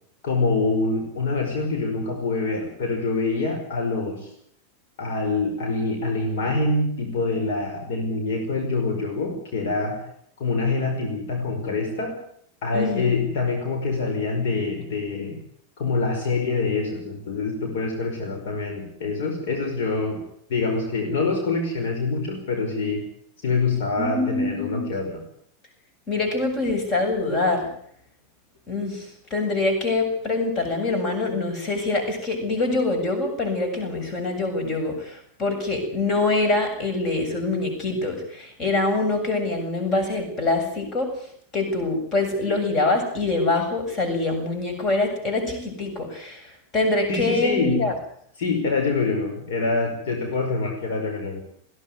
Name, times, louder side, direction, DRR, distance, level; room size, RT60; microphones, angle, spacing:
voice 1, 0.2-4.3 5.0-10.0 10.4-12.2 12.6-15.4 15.8-20.2 20.5-23.1 23.4-25.2 47.1-47.8 48.4-51.4, left 3 dB, 55° left, 3 dB, 5.1 m, -25 dB
voice 2, 12.7-13.1 24.0-24.8 26.1-27.7 28.7-41.1 41.5-47.9, left 2 dB, 30° left, 6 dB, 7.4 m, -24 dB
21.0 x 16.5 x 9.6 m, 0.66 s
figure-of-eight pair, 90°, 0 cm